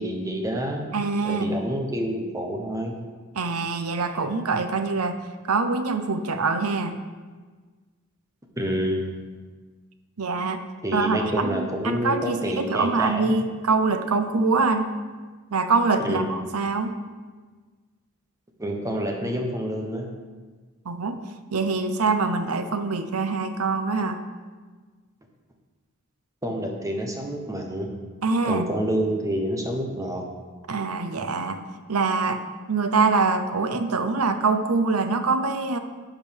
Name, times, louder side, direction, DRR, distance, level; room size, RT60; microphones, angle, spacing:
voice 1, 0.0-0.9 1.2-3.0 8.6-9.3 10.8-13.3 16.0-16.3 18.6-20.1 26.4-27.9 28.4-30.2, equal, 15° right, 2 dB, 1.1 m, -28 dB
voice 2, 0.9-1.6 3.3-5.2 5.5-6.9 10.2-10.6 10.9-14.9 15.5-17.0 20.9-21.2 21.5-24.2 28.2-28.7 30.7-31.6 31.9-32.4 32.7-35.8, right 4 dB, 85° right, 9 dB, 0.7 m, -24 dB
11.0 x 5.1 x 5.2 m, 1.4 s
head